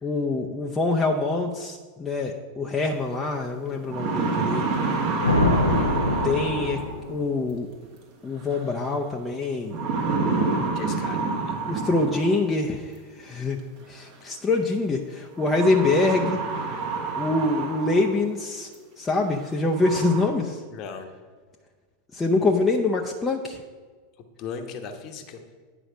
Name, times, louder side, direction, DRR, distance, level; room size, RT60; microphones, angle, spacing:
voice 1, 0.0-4.7 6.2-6.8 7.1-7.7 8.2-9.8 11.6-13.6 13.9-16.4 17.1-18.7 19.0-20.6 22.1-23.6, left 3 dB, 15° left, 0 dB, 0.6 m, -25 dB
sound 1, 3.1-3.2 3.7-7.1 8.5-8.9 9.7-12.5 13.8-13.9 15.4-18.3 18.7-18.8 19.4-19.5 19.7-20.3, right 4 dB, 50° right, 1.9 m, -28 dB
sound 2, 5.2-7.5, left 1 dB, 85° left, 0.7 m, -24 dB
voice 2, 10.7-11.6 14.2-14.3 20.7-21.1 24.4-25.4, left 5 dB, 40° left, 5 dB, 1.0 m, -37 dB
9.6 x 5.0 x 5.0 m, 1.5 s
figure-of-eight pair, 85°, 0 cm